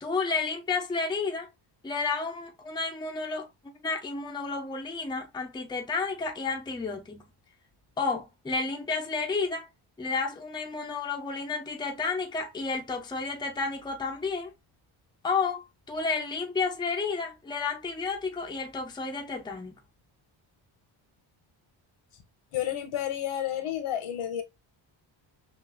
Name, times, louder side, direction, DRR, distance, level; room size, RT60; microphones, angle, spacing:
voice 1, 0.0-1.5 1.8-3.5 3.8-7.3 8.0-9.7 10.0-14.5 15.2-19.8, left 4 dB, 10° left, 0.6 m, -31 dB
voice 2, 22.5-24.4, left 11 dB, 80° left, 1.3 m, -31 dB
5.8 x 2.5 x 2.2 m
wide cardioid pair, 165°, 49 cm